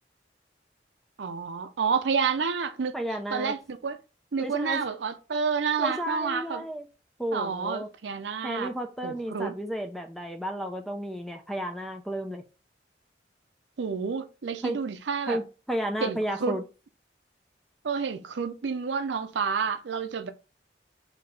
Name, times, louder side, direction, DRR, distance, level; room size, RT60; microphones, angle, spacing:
voice 1, 1.2-3.0 3.3-4.0 4.3-6.6 7.3-8.7 9.0-9.6 13.8-15.4 16.0-16.6 17.8-20.3, right 5 dB, 80° right, 0.5 m, -29 dB
voice 2, 2.9-3.5 4.4-4.8 5.8-6.8 7.2-7.9 8.4-12.4 14.6-14.8 15.3-16.6, equal, ahead, 0.4 m, -32 dB
4.0 x 2.8 x 3.4 m
head